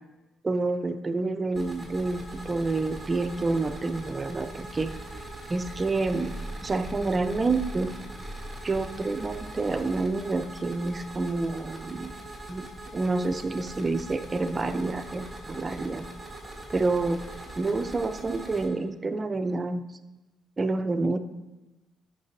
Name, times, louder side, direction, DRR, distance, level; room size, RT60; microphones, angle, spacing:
voice 1, 0.4-4.9 5.5-6.3 6.6-7.9 8.6-12.1 12.5-12.7 12.9-16.0 16.7-17.2 17.6-19.8 20.6-21.2, right 3 dB, 30° right, 9 dB, 0.5 m, -28 dB
sound 1, 1.5-18.7, right 1 dB, 5° right, 2.4 m, -41 dB
11.0 x 5.9 x 2.7 m, 1.1 s
cardioid pair, 90°, 0 cm